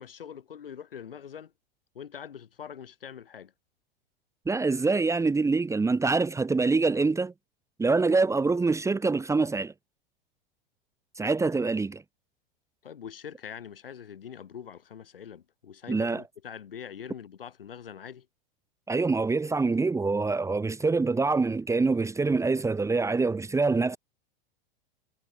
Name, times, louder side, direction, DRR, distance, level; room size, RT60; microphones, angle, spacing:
voice 1, 0.0-1.5 1.9-3.5 12.8-18.3, left 8 dB, 70° left, 5.1 m, -43 dB
voice 2, 4.4-7.3 7.8-9.7 11.2-12.0 15.9-16.2 18.9-24.0, right 3 dB, 10° right, 1.6 m, -25 dB
figure-of-eight pair, 90°, 29 cm